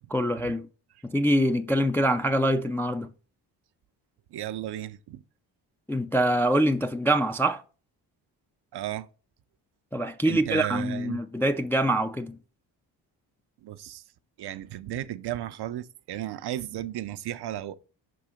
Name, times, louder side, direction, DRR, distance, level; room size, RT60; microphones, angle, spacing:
voice 1, 0.1-0.7 1.0-3.1 5.9-7.6 9.9-12.4, right 1 dB, 5° left, 0.3 m, -24 dB
voice 2, 4.3-5.2 8.7-9.1 10.2-11.2 13.6-14.0 14.4-17.7, right 13 dB, 55° right, 0.6 m, -34 dB
5.5 x 3.9 x 4.8 m
supercardioid pair, 50°, 48 cm